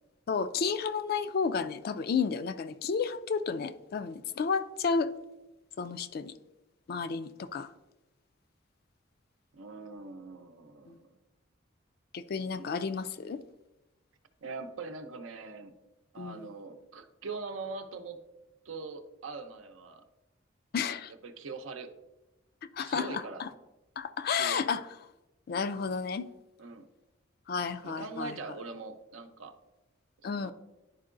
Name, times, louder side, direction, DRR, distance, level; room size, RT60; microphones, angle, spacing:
voice 1, 0.3-5.1 5.8-6.3 6.9-7.7 10.9-11.0 12.1-13.4 16.2-16.5 20.7-21.1 22.7-23.5 24.0-24.9 25.5-26.3 27.5-28.3 30.2-30.5, left 5 dB, 50° left, 13 dB, 0.3 m, -32 dB
voice 2, 9.5-11.2 12.5-12.7 14.4-15.7 16.1-18.2 18.6-20.0 21.2-21.9 22.8-23.4 24.3-24.6 26.6-26.9 27.8-29.6 30.3-30.5, right 4 dB, 85° right, 7 dB, 0.7 m, -42 dB
10.5 x 4.6 x 2.5 m, 1.0 s
head